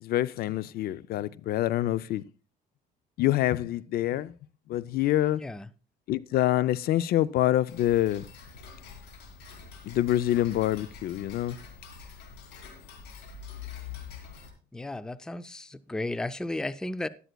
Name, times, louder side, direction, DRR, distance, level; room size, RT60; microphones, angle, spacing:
voice 1, 0.0-2.2 3.2-4.3 4.7-5.4 6.1-8.3 9.8-11.6, left 13 dB, 65° left, 0.4 m, -26 dB
voice 2, 5.4-5.7 14.7-17.1, left 2 dB, 5° left, 0.4 m, -34 dB
Tick-tock, 7.7-14.5, left 6 dB, 90° left, 2.7 m, -45 dB
12.5 x 11.5 x 2.3 m
cardioid pair, 110°, 17 cm